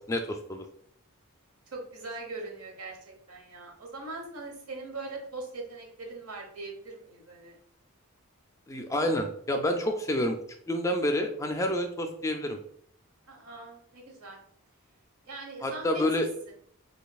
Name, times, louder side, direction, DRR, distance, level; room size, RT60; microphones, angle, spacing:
voice 1, 0.1-0.6 8.7-10.4 10.7-12.6 15.6-16.3, left 1 dB, 15° left, 5 dB, 0.3 m, -28 dB
voice 2, 1.7-7.6 13.3-14.4 15.2-16.5, right 2 dB, 85° right, 0 dB, 1.1 m, -41 dB
3.9 x 3.1 x 2.3 m, 0.64 s
head